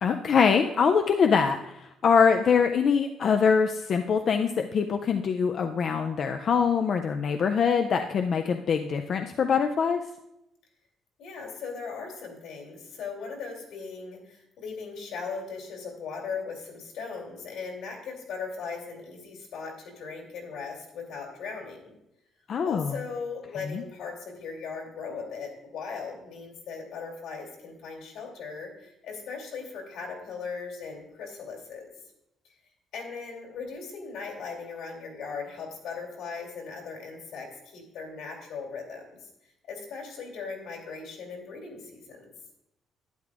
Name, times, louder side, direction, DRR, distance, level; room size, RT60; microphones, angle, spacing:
voice 1, 0.0-10.0 22.5-22.9 23.7-23.8, left 6 dB, 40° left, 5 dB, 0.4 m, -24 dB
voice 2, 11.2-21.9 22.6-31.9 32.9-42.3, left 5 dB, 75° left, 0 dB, 2.7 m, -38 dB
11.5 x 10.0 x 2.4 m, 0.85 s
cardioid pair, 175°, 0 cm